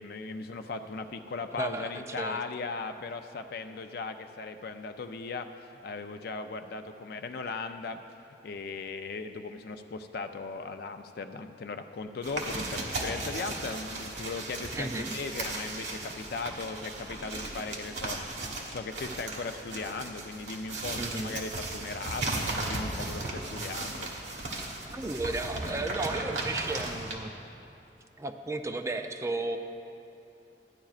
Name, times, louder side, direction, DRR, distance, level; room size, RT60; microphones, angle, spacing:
voice 1, 0.0-8.0 8.4-24.1, left 4 dB, 60° left, 8 dB, 0.4 m, -38 dB
voice 2, 1.6-1.9 2.2-2.4 14.7-15.2 21.0-21.4 24.8-27.3 28.2-29.6, right 2 dB, 15° right, 6 dB, 0.4 m, -34 dB
sound 1, 12.2-27.2, right 2 dB, 85° right, 1.3 m, -36 dB
14.0 x 10.0 x 2.4 m, 2.8 s
head